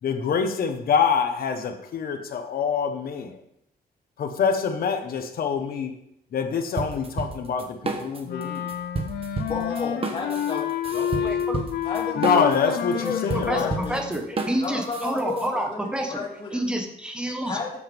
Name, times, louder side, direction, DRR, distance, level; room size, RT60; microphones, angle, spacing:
voice 1, 0.0-3.4 4.2-5.9 6.3-8.7 12.2-13.7, left 6 dB, 65° left, 6 dB, 1.3 m, -25 dB
sound 1, 6.8-8.4 8.7-15.5, right 3 dB, 35° right, 1.2 m, -31 dB
Wind instrument woodwind instrument, 8.3-14.2, left 10 dB, 85° left, 0.8 m, -29 dB
voice 2, 9.5-11.5 11.8-14.2 14.6-16.6 17.4-17.8, left 4 dB, 30° left, -2 dB, 2.6 m, -33 dB
voice 3, 11.2-11.6 13.3-13.6 13.9-16.2 16.5-17.6, right 1 dB, 5° right, 3 dB, 1.4 m, -28 dB
13.0 x 8.7 x 3.6 m, 0.77 s
wide cardioid pair, 155°, 16 cm